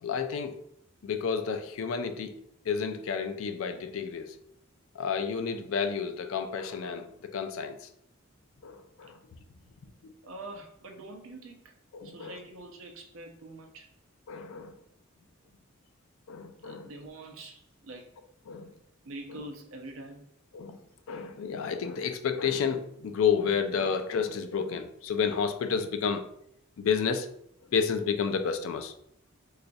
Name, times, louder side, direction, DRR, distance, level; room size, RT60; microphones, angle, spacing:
voice 1, 0.0-0.6 1.0-2.4 2.7-4.3 5.0-7.8 8.6-9.2 10.0-10.1 11.9-12.4 14.3-14.8 16.3-16.9 18.5-18.7 19.3-19.4 20.5-20.8 21.1-26.2 26.8-27.3 27.7-28.9, left 6 dB, 70° left, 0.4 m, -30 dB
voice 2, 10.2-11.7 12.0-13.9 16.6-18.1 19.0-20.3, right 2 dB, 70° right, 0.5 m, -45 dB
4.0 x 2.4 x 2.6 m
head